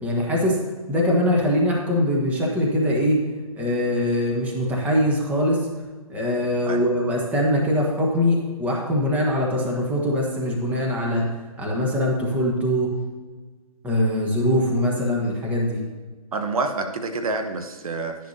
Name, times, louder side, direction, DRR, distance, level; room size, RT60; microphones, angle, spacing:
voice 1, 0.0-0.6 0.9-3.2 3.6-5.7 6.1-11.3 11.6-12.9 13.8-15.8, left 1 dB, 5° right, -2 dB, 1.2 m, -22 dB
voice 2, 16.3-18.2, right 3 dB, 65° right, 6 dB, 1.0 m, -27 dB
11.0 x 10.5 x 2.8 m, 1.3 s
hypercardioid pair, 150°, 20 cm